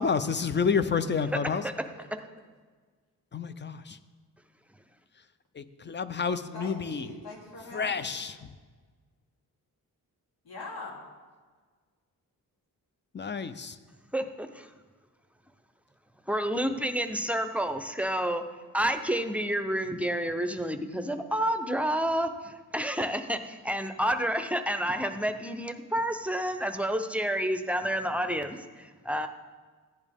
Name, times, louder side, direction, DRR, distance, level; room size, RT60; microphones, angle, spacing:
voice 1, 0.0-1.6 3.3-4.0 5.6-7.1 7.7-8.4 13.1-13.8, left 5 dB, 30° left, 12 dB, 0.6 m, -29 dB
voice 2, 6.5-8.1 10.4-10.9, left 2 dB, 85° left, -2 dB, 3.2 m, -42 dB
voice 3, 14.1-14.7 16.3-18.4 18.7-29.3, equal, 5° right, 7 dB, 0.7 m, -29 dB
15.5 x 10.5 x 3.6 m, 1.5 s
wide cardioid pair, 105°, 35 cm